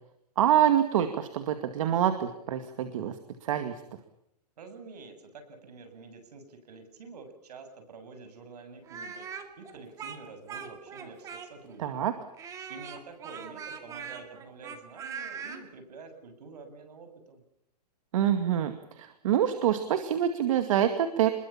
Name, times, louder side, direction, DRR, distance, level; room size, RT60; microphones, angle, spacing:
voice 1, 0.4-3.2 3.4-3.7 11.8-12.1 18.1-21.3, right 10 dB, 50° right, 8 dB, 2.2 m, -26 dB
voice 2, 4.6-11.9 12.7-17.4, right 4 dB, 70° right, 8 dB, 7.8 m, -48 dB
Speech, 8.9-11.8 12.4-15.6, right 7 dB, 15° right, 2.2 m, -41 dB
28.5 x 22.0 x 7.3 m, 0.75 s
hypercardioid pair, 165°, 21 cm